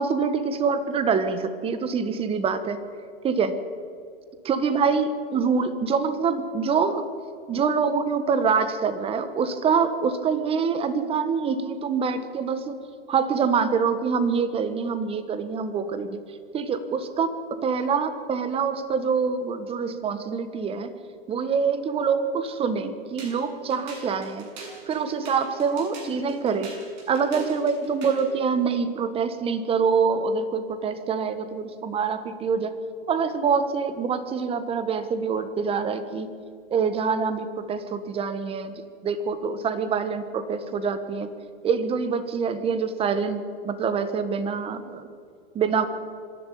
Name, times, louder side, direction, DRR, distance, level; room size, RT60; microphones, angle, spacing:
voice 1, 0.0-2.8 3.2-3.5 4.4-7.1 7.5-16.2 16.5-17.3 17.6-20.9 21.3-24.5 24.9-26.7 27.1-32.7 33.1-36.3 36.7-38.7 39.0-41.3 41.6-45.1 45.5-45.9, right 5 dB, 20° right, 11 dB, 1.4 m, -25 dB
sound 1, 23.2-28.3, right 3 dB, 45° right, 7.8 m, -42 dB
25.0 x 11.5 x 9.3 m, 2.3 s
hypercardioid pair, 135°, 30 cm